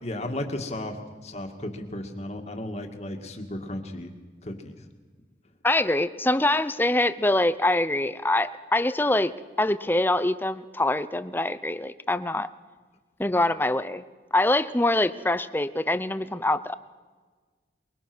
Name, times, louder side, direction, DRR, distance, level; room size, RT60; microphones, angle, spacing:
voice 1, 0.0-4.1 4.4-4.8, left 1 dB, 40° left, 4 dB, 2.1 m, -34 dB
voice 2, 5.6-9.3 9.6-12.5 13.2-14.0 14.3-16.7, left 1 dB, 10° left, 14 dB, 0.6 m, -24 dB
23.5 x 23.0 x 6.2 m, 1.4 s
head